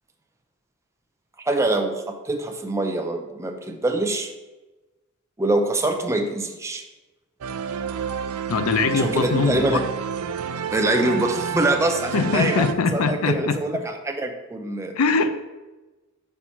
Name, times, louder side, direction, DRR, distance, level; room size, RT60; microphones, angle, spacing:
voice 1, 1.5-4.3 5.4-6.8 9.0-9.8 10.7-15.0, right 2 dB, 15° right, 4 dB, 0.5 m, -24 dB
sound 1, 7.4-12.7, right 7 dB, 75° right, 0.4 m, -29 dB
voice 2, 8.5-9.8 12.1-13.6 15.0-15.4, left 4 dB, 80° left, 10 dB, 0.5 m, -22 dB
4.5 x 4.2 x 5.5 m, 1.1 s
head